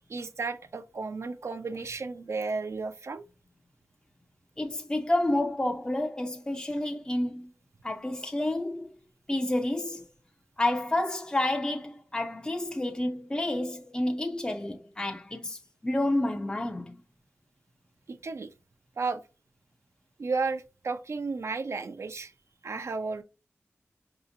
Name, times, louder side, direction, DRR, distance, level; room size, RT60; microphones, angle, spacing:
voice 1, 0.1-3.2 18.1-18.5 19.0-19.2 20.2-22.3 22.6-23.2, right 4 dB, 65° right, 0.5 m, -33 dB
voice 2, 4.6-7.5 7.8-8.9 9.3-10.1 10.6-16.9, left 1 dB, 15° left, 0.5 m, -29 dB
4.8 x 2.8 x 2.6 m
cardioid pair, 45°, 5 cm